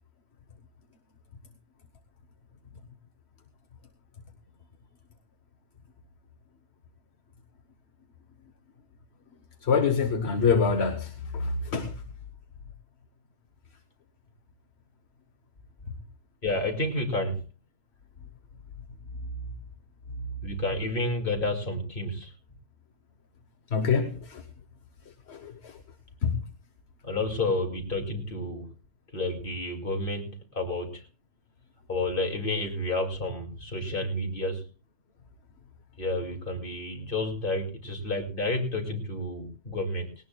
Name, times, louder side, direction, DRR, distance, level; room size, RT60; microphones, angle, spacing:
voice 1, 9.6-12.0 23.7-24.4 25.3-25.8 26.2-26.4, left 5 dB, 65° left, 8 dB, 1.3 m, -26 dB
voice 2, 16.4-17.4 20.4-22.3 27.0-28.7 29.1-31.0 31.9-34.7 36.0-40.1, left 2 dB, 50° left, 2 dB, 2.7 m, -30 dB
19.0 x 18.0 x 2.3 m, 0.33 s
omnidirectional pair, 1.2 m